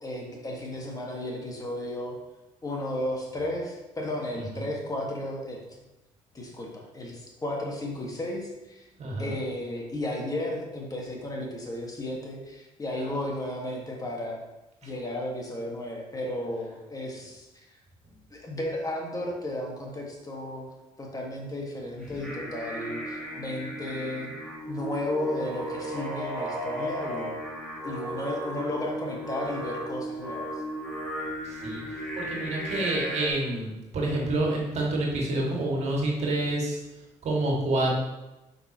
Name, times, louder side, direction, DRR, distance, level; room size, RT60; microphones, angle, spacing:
voice 1, 0.0-2.1 2.6-5.6 6.3-8.9 9.2-14.4 14.8-17.5 18.3-20.7 21.0-24.3 24.7-27.3 27.8-30.5, left 1 dB, 25° left, -1 dB, 1.6 m, -34 dB
voice 2, 4.3-4.7 9.0-9.4 31.4-36.8 37.2-37.9, right 2 dB, 55° right, -2 dB, 1.9 m, -28 dB
Singing, 22.0-33.3, right 1 dB, 5° left, 2.1 m, -35 dB
5.9 x 5.4 x 2.9 m, 0.99 s
supercardioid pair, 70°, 13 cm